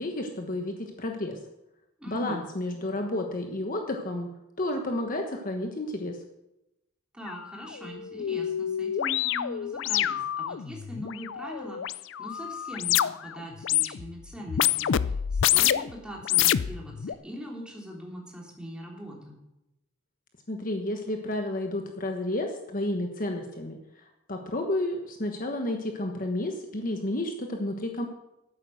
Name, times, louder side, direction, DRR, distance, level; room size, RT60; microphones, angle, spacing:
voice 1, 0.0-1.4 2.1-4.3 4.6-6.2 20.5-28.1, left 1 dB, 40° left, 3 dB, 1.2 m, -31 dB
voice 2, 2.0-2.4 7.1-11.9 12.2-19.4, equal, 5° right, -2 dB, 3.2 m, -41 dB
sound 1, 7.3-7.4 7.7-13.3 13.6-14.1 14.5-15.9 16.2-17.1, left 11 dB, 60° left, 0.4 m, -27 dB
12.5 x 9.3 x 6.4 m, 0.91 s
head